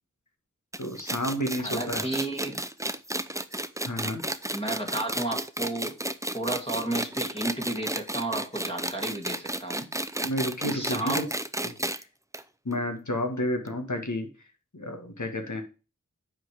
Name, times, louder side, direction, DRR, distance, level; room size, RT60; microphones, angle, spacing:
sound 1, 0.7-12.0 12.3-12.4 12.7-12.8 13.7-13.8, right 1 dB, 10° right, 0.6 m, -32 dB
voice 1, 0.8-2.1 3.9-4.2 10.2-11.3 11.6-12.0 12.7-14.3 14.7-15.6, left 1 dB, 70° left, 5 dB, 1.9 m, -31 dB
voice 2, 1.6-2.6 4.5-5.9 6.3-9.9 10.7-11.2, right 2 dB, 20° left, 1 dB, 2.4 m, -32 dB
9.5 x 4.7 x 5.0 m, 0.32 s
wide cardioid pair, 40°, 31 cm